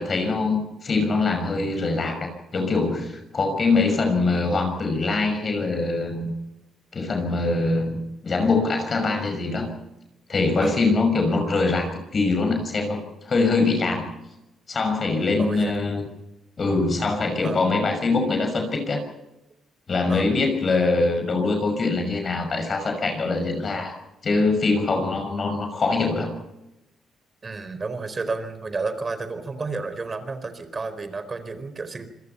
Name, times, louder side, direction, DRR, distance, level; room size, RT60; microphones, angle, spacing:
voice 1, 0.0-6.3 6.9-9.7 10.3-14.1 14.7-16.0 16.6-19.0 19.9-23.9 24.2-26.3, left 3 dB, 40° left, 5 dB, 6.0 m, -23 dB
voice 2, 15.4-15.9 17.4-17.6 20.1-20.4 27.4-32.1, right 3 dB, 30° right, 11 dB, 4.4 m, -31 dB
27.0 x 22.0 x 5.7 m, 0.95 s
cardioid pair, 90°, 0 cm